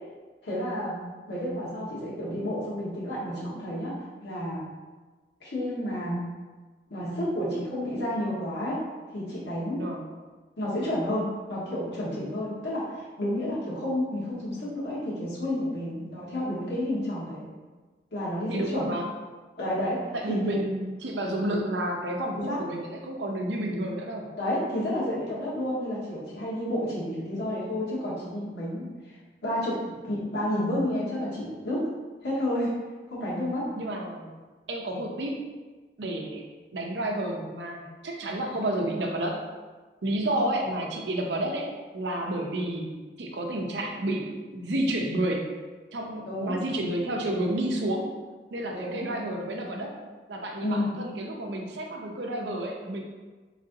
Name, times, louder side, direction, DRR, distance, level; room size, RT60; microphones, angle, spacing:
voice 1, 0.4-1.0 1.3-4.6 5.4-6.2 6.9-8.8 9.1-9.8 10.6-17.5 18.1-18.8 19.6-20.0 20.3-20.6 22.5-22.6 24.4-29.1 29.4-31.9 32.2-32.7 33.1-33.7 46.3-46.6 48.7-49.1 50.6-50.9, left 1 dB, 75° left, -8 dB, 1.3 m, -30 dB
voice 2, 18.5-19.1 20.1-24.3 33.8-34.3 34.7-35.4 36.0-36.4 36.7-39.5 40.0-45.5 45.9-48.1 48.5-50.0 50.3-53.0, right 1 dB, 80° right, 1 dB, 0.6 m, -30 dB
3.9 x 3.2 x 2.7 m, 1.3 s
head